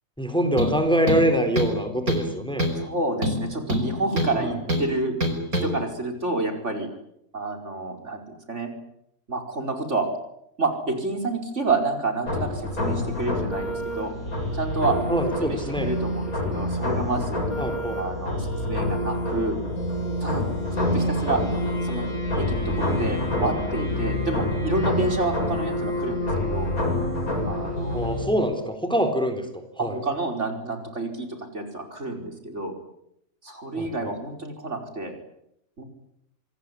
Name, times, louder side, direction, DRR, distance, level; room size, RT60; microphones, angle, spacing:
voice 1, 0.2-2.6 4.4-4.5 15.1-15.9 17.6-18.0 20.8-20.9 27.9-30.0 33.8-33.9, equal, 5° left, 7 dB, 3.9 m, -24 dB
sound 1, 0.6-0.8 1.1-1.8 2.1-2.3 2.6-2.8 3.2-4.4 4.7-4.9 5.2-5.7, equal, 75° right, 5.9 m, -25 dB
voice 2, 2.8-5.2 5.6-6.9 7.3-8.2 8.5-8.7 9.3-10.1 10.6-14.2 14.5-15.0 15.4-17.4 18.0-19.6 20.2-21.4 21.8-22.1 22.4-26.7 27.5-28.0 29.8-32.7 33.4-35.2 35.8-35.9, right 3 dB, 50° right, 5 dB, 5.5 m, -29 dB
sound 2, 12.3-28.3, left 1 dB, 75° left, 8.3 m, -27 dB
27.0 x 21.5 x 9.9 m, 0.76 s
omnidirectional pair, 1.5 m